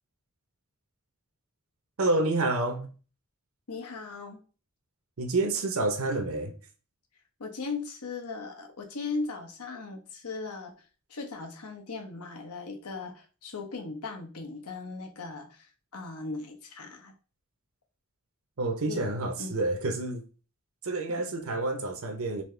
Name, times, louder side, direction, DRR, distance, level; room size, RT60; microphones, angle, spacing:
voice 1, 2.0-2.9 5.2-6.5 18.6-20.3 20.8-22.4, right 2 dB, 65° right, 0.8 m, -28 dB
voice 2, 3.7-4.4 7.4-10.7 11.1-17.1 18.9-19.0 19.4-19.5 21.1-21.2, left 3 dB, 80° left, 1.0 m, -38 dB
4.1 x 2.8 x 3.2 m
head